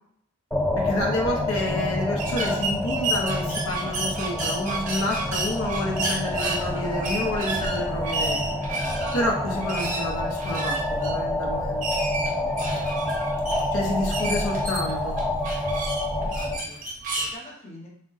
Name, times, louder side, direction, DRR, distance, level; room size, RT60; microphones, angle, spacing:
sound 1, 0.5-16.6, left 1 dB, 5° left, 0.3 m, -28 dB
voice 1, 0.8-8.4 9.1-11.9 13.7-15.2, left 1 dB, 85° left, 0 dB, 0.7 m, -29 dB
sound 2, 2.2-17.3, right 2 dB, 35° right, 0.6 m, -31 dB
sound 3, 4.9-11.2, left 1 dB, 70° left, 1.1 m, -47 dB
voice 2, 16.2-17.9, left 1 dB, 30° left, -3 dB, 0.9 m, -47 dB
3.5 x 2.1 x 3.9 m, 0.69 s
head